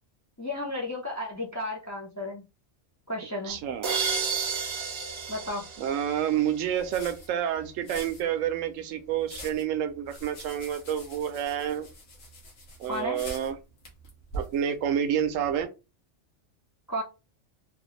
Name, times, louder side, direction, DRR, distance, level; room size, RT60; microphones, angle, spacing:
voice 1, 0.4-2.4 3.1-3.6 5.3-5.6 12.9-13.2 16.9-17.0, left 1 dB, 25° left, 0.3 m, -33 dB
voice 2, 3.4-4.0 5.8-11.9 12.8-13.6 14.3-15.7, right 9 dB, 90° right, 1.0 m, -29 dB
sound 1, 3.5-15.6, right 1 dB, 90° left, 1.5 m, -46 dB
sound 2, 3.8-6.7, right 5 dB, 65° right, 1.0 m, -31 dB
3.4 x 2.3 x 3.0 m
omnidirectional pair, 1.3 m